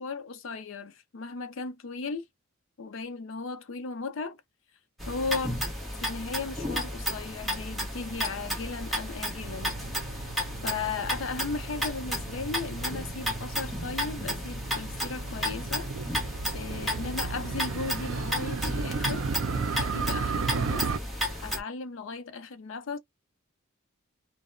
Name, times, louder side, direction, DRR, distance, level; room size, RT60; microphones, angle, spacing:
voice 1, 0.0-2.2 2.8-4.4 5.1-5.6 6.0-9.8 10.1-10.3 10.6-15.9 16.5-20.9 21.1-23.0, left 4 dB, 65° left, 0.5 m, -36 dB
sound 1, 5.0-21.6, equal, ahead, 0.8 m, -33 dB
Motorcycle, 9.4-21.0, right 5 dB, 65° right, 0.5 m, -35 dB
2.8 x 2.0 x 2.5 m
head